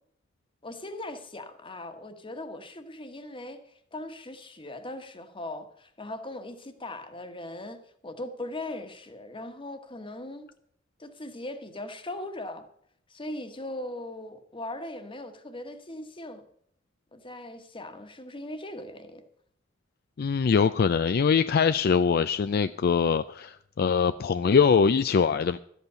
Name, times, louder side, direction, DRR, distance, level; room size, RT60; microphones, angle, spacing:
voice 1, 0.6-3.6 3.9-7.8 8.0-10.5 11.0-12.6 13.1-16.4 17.1-19.2, left 1 dB, 25° left, 1.3 m, -39 dB
voice 2, 20.2-25.6, left 6 dB, 55° left, 0.4 m, -23 dB
13.0 x 8.2 x 6.8 m
head